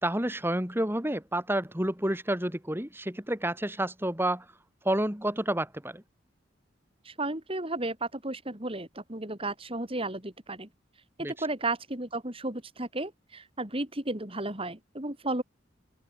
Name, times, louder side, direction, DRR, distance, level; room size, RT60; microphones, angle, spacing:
voice 1, 0.0-4.5 4.8-6.0 11.2-11.3, right 1 dB, 10° right, 3.6 m, -29 dB
voice 2, 7.0-10.7 11.2-15.4, right 2 dB, 30° right, 3.9 m, -33 dB
open air
head